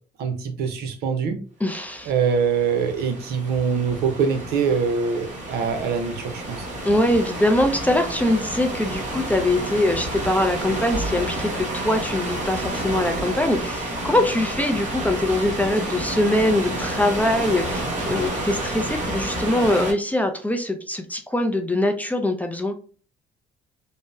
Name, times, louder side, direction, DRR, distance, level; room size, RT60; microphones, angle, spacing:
voice 1, 0.2-1.4 2.1-6.7, right 6 dB, 70° right, 7 dB, 0.7 m, -24 dB
voice 2, 1.6-2.1 6.8-22.7, left 1 dB, 10° left, 5 dB, 0.4 m, -23 dB
sound 1, 1.9-19.9, right 1 dB, 45° right, 1.5 m, -30 dB
3.5 x 2.0 x 2.6 m, 0.42 s
cardioid pair, 110°, 17 cm